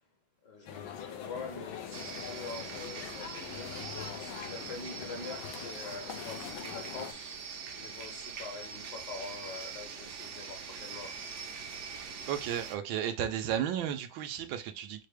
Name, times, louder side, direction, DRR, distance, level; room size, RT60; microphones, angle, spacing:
voice 1, 0.4-3.7 4.1-7.4 7.7-11.1, left 4 dB, 65° left, 1.5 m, -45 dB
sound 1, 0.7-7.1, left 8 dB, 90° left, 1.5 m, -43 dB
sound 2, 1.9-12.8, right 6 dB, 60° right, 0.8 m, -43 dB
voice 2, 11.9-15.1, right 9 dB, 85° right, 1.4 m, -34 dB
4.9 x 2.2 x 4.8 m
omnidirectional pair, 2.1 m